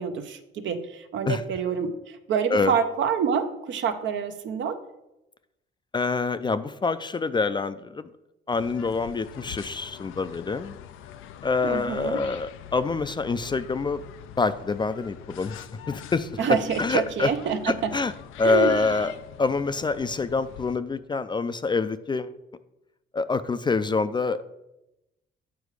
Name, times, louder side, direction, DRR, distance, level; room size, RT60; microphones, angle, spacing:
voice 1, 0.0-4.8 11.6-12.2 16.4-17.9 18.4-18.9, right 7 dB, 70° right, 8 dB, 0.7 m, -27 dB
voice 2, 5.9-8.1 8.5-10.8 11.4-14.0 14.4-16.3 16.8-17.3 17.7-18.1 18.4-19.1 19.4-22.3 23.1-24.4, left 4 dB, 25° left, 12 dB, 0.4 m, -26 dB
sound 1, 8.5-20.8, left 11 dB, 85° left, 0.4 m, -44 dB
8.2 x 4.7 x 4.8 m, 0.92 s
cardioid pair, 90°, 20 cm